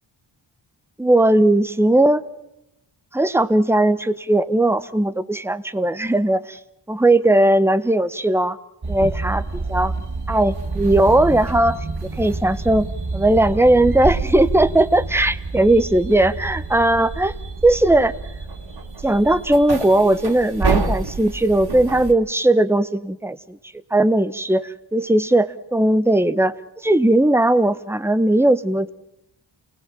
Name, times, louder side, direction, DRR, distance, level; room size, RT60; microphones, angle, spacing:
voice 1, 1.0-2.2 3.1-6.6 6.9-8.6 8.9-9.9 10.3-17.3 17.6-18.1 19.0-23.6 23.9-26.5 26.8-28.9, right 1 dB, 5° right, 12 dB, 1.0 m, -18 dB
sound 1, 8.8-22.1, right 3 dB, 50° right, 2.5 m, -28 dB
28.5 x 18.0 x 7.5 m, 0.87 s
cardioid pair, 50°, 48 cm